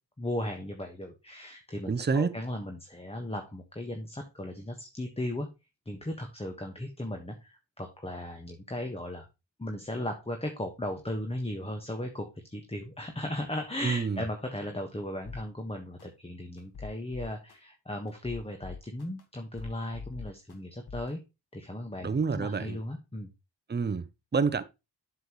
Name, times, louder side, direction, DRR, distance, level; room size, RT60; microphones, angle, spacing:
voice 1, 0.2-5.5 5.8-9.3 9.6-21.2 21.5-23.3, left 1 dB, 15° left, 1.3 m, -36 dB
voice 2, 1.9-2.4 13.8-14.2 22.0-22.8 23.7-24.1 24.3-24.6, right 5 dB, 25° right, 0.7 m, -28 dB
sound 1, 15.2-15.4 16.0-16.1 16.6-17.5 18.1-19.2 19.5-20.5 20.9-21.1, left 5 dB, 60° left, 1.5 m, -43 dB
7.7 x 7.0 x 3.0 m
cardioid pair, 55°, 43 cm